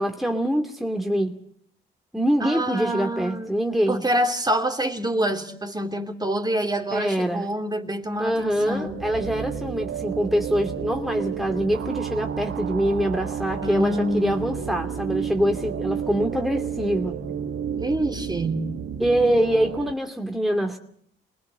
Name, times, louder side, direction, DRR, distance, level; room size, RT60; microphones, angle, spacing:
voice 1, 0.0-1.4 2.1-4.0 6.9-7.4 8.2-17.1 19.0-20.8, equal, ahead, 2.5 m, -24 dB
voice 2, 2.4-3.5 3.9-9.0 13.6-14.4 17.7-18.8, right 1 dB, 20° right, 3.0 m, -26 dB
sound 1, 8.3-19.9, right 8 dB, 70° right, 1.6 m, -31 dB
28.5 x 19.5 x 6.8 m
supercardioid pair, 65°, 21 cm